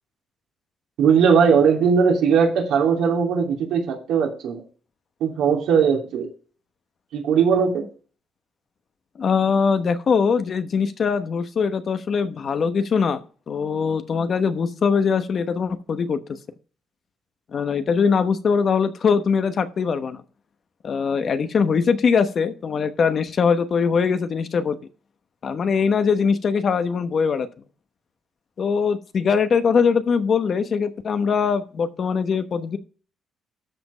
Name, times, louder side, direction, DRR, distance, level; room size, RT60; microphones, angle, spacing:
voice 1, 1.0-4.6 5.2-6.3 7.1-7.8, right 6 dB, 85° right, 0 dB, 2.8 m, -19 dB
voice 2, 9.2-13.2 13.5-16.4 17.5-20.2 20.8-24.8 25.4-27.5 28.6-32.8, left 6 dB, 50° left, 10 dB, 1.0 m, -22 dB
13.0 x 5.2 x 5.0 m, 0.40 s
cardioid pair, 90°, 0 cm